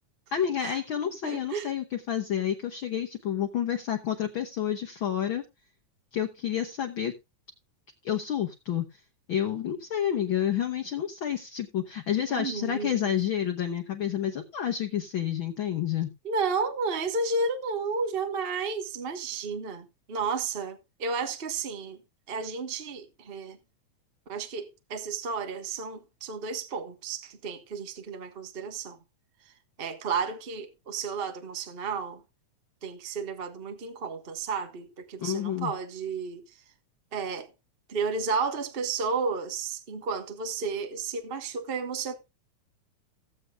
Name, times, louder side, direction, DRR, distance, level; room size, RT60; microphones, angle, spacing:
voice 1, 0.3-5.4 6.1-7.1 8.0-8.9 9.3-16.1 35.2-35.7, left 10 dB, 65° left, 1.3 m, -29 dB
voice 2, 1.2-1.7 12.3-13.1 16.2-22.0 22.3-23.6 24.3-29.0 29.8-32.2 32.8-36.4 37.1-37.5 37.9-42.1, right 4 dB, 60° right, 0.5 m, -32 dB
17.5 x 7.9 x 2.4 m
omnidirectional pair, 3.4 m